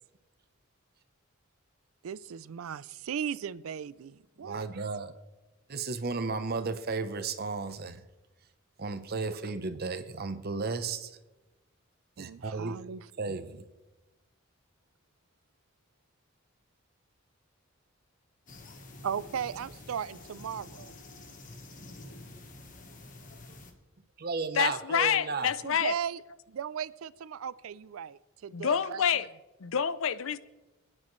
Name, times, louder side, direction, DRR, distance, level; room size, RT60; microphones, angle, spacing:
voice 1, 2.0-4.8 12.2-13.5 19.0-20.9 25.6-26.2 26.5-29.0, right 8 dB, 90° right, 0.4 m, -37 dB
voice 2, 4.4-5.1 5.7-8.0 8.8-11.2 12.2-12.8 13.2-13.6 24.2-25.5, right 4 dB, 50° right, 0.8 m, -34 dB
sound 1, 18.5-23.7, left 2 dB, 40° left, 1.3 m, -48 dB
voice 3, 24.5-25.9 28.5-29.3 29.6-30.4, left 7 dB, 70° left, 0.5 m, -27 dB
27.0 x 9.8 x 3.2 m
head